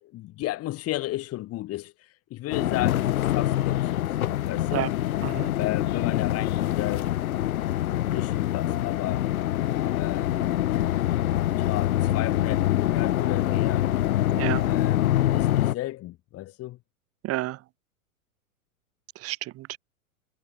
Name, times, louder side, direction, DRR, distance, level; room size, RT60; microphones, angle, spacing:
voice 1, 0.0-4.2 4.5-4.9 5.6-7.1 8.1-9.2 10.0-10.6 11.6-13.9 14.7-16.8, left 16 dB, 35° left, 3.0 m, -34 dB
sound 1, 2.5-15.8, left 13 dB, 70° left, 1.2 m, -25 dB
voice 2, 5.2-5.5 14.4-14.7 17.2-17.6 19.2-19.8, right 17 dB, 30° right, 2.1 m, -30 dB
hypercardioid pair, 115°, 44 cm